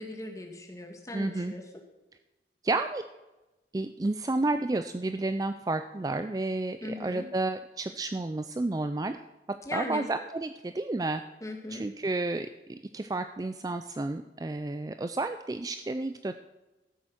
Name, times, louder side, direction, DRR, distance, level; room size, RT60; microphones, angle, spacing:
voice 1, 0.0-1.6 6.8-7.3 9.7-10.1 11.4-11.9, left 1 dB, 20° left, 2 dB, 1.8 m, -38 dB
voice 2, 1.1-1.5 2.6-3.0 3.7-9.2 9.5-11.2 11.7-16.3, right 2 dB, 20° right, 9 dB, 0.3 m, -31 dB
14.0 x 8.0 x 6.1 m, 1.0 s
head